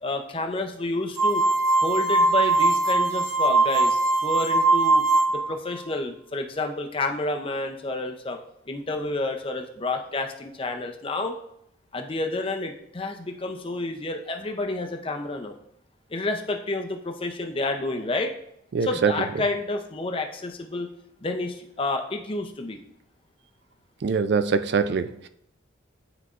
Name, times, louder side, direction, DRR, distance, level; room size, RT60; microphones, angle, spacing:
voice 1, 0.0-1.4 1.8-5.1 5.3-8.4 8.7-11.3 11.9-15.5 16.1-18.3 18.8-20.9 21.2-22.8, left 2 dB, 25° left, 4 dB, 0.5 m, -29 dB
sound 1, 1.2-5.6, right 3 dB, 15° right, 0.9 m, -21 dB
voice 2, 18.7-19.1 24.0-25.3, right 5 dB, 55° right, 11 dB, 0.3 m, -23 dB
9.6 x 4.0 x 2.5 m, 0.74 s
head